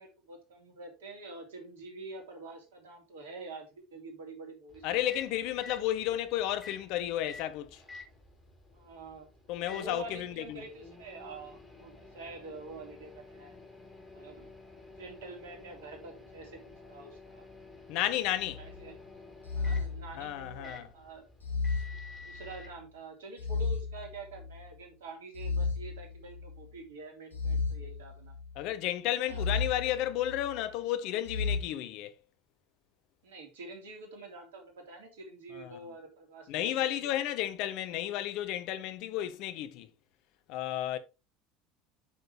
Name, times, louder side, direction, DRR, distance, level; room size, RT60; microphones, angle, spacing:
voice 1, 0.0-5.1 8.7-9.3 9.6-13.6 14.1-14.5 14.8-16.6 16.9-17.5 18.6-18.9 19.5-21.3 22.2-28.3 29.3-29.4 33.2-36.8 37.0-37.2, right 3 dB, 70° right, 3.3 m, -47 dB
Microwave oven, 4.7-22.7, left 3 dB, 15° left, 4.7 m, -51 dB
voice 2, 4.8-7.8 9.5-10.6 17.9-18.6 20.2-20.9 28.6-32.1 35.5-35.8 36.5-39.9 40.5-41.0, left 12 dB, 55° left, 1.0 m, -32 dB
sound 1, 18.4-18.8 19.4-20.7 21.4-22.7 23.4-24.7 25.3-26.6 27.3-28.6 29.3-30.6 31.2-31.6, left 4 dB, 85° left, 1.7 m, -34 dB
8.6 x 6.7 x 3.3 m
figure-of-eight pair, 70°, 0 cm